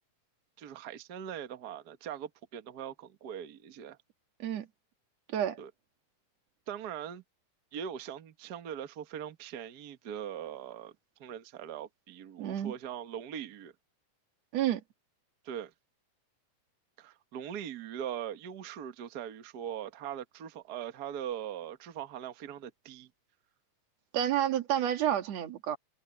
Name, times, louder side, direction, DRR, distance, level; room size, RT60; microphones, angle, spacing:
voice 1, 0.6-4.0 5.6-5.7 6.7-7.2 7.7-10.9 11.2-13.7 15.4-15.7 17.0-23.1, right 9 dB, 80° right, 0.8 m, -41 dB
voice 2, 12.4-12.7 14.5-14.8 24.1-25.8, right 11 dB, 55° right, 2.6 m, -29 dB
omnidirectional pair, 3.9 m